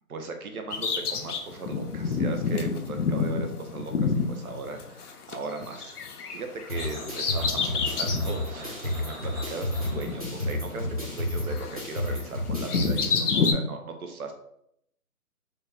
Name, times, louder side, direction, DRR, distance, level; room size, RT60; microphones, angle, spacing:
voice 1, 0.1-6.0 6.3-14.3, right 4 dB, 70° right, 5 dB, 0.7 m, -38 dB
Bird vocalization bird call bird song, 0.7-5.3 5.6-8.3 8.8-8.9 9.8-11.2 11.5-13.5, left 5 dB, 80° left, 0.7 m, -29 dB
sound 1, 6.7-12.9, left 1 dB, 25° right, 0.6 m, -31 dB
sound 2, 6.7-12.0, right 1 dB, 40° right, 1.3 m, -44 dB
3.0 x 2.3 x 3.4 m, 0.76 s
hypercardioid pair, 165°, 45 cm